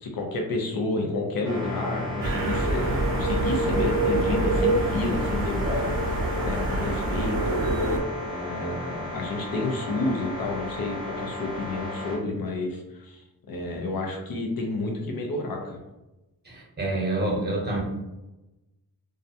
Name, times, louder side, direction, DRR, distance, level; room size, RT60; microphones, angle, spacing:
voice 1, 0.0-6.0 6.4-7.6 8.2-15.8, left 2 dB, 65° left, 1 dB, 0.6 m, -30 dB
sound 1, 1.4-12.2, left 2 dB, 40° left, 0.9 m, -34 dB
sound 2, 2.2-8.0, right 2 dB, 60° right, 0.5 m, -26 dB
voice 2, 16.4-17.8, right 2 dB, 25° right, -4 dB, 0.9 m, -27 dB
2.4 x 2.1 x 2.6 m, 1.0 s
wide cardioid pair, 100°, 38 cm